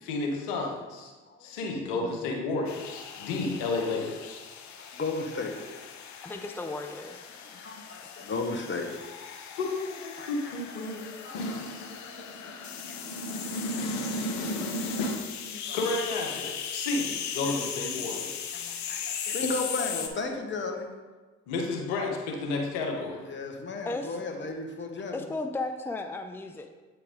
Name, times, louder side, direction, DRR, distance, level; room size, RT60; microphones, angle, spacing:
voice 1, 0.0-1.1 1.4-4.4 9.6-9.8 10.0-15.3 15.7-18.7 21.5-23.2, left 2 dB, 80° left, 1 dB, 1.2 m, -32 dB
sound 1, 2.7-20.1, left 8 dB, 60° left, 0.9 m, -38 dB
voice 2, 4.8-5.6 7.5-9.0 10.2-11.6 11.9-12.5 12.9-13.0 15.5-15.8 17.4-17.6 18.0-18.1 18.5-20.9 23.1-25.2, left 3 dB, 35° left, 3 dB, 1.3 m, -35 dB
voice 3, 6.2-7.2 23.9-24.2 25.1-26.8, left 2 dB, 5° left, 5 dB, 0.6 m, -35 dB
8.5 x 4.6 x 3.8 m, 1.3 s
hypercardioid pair, 55°, 33 cm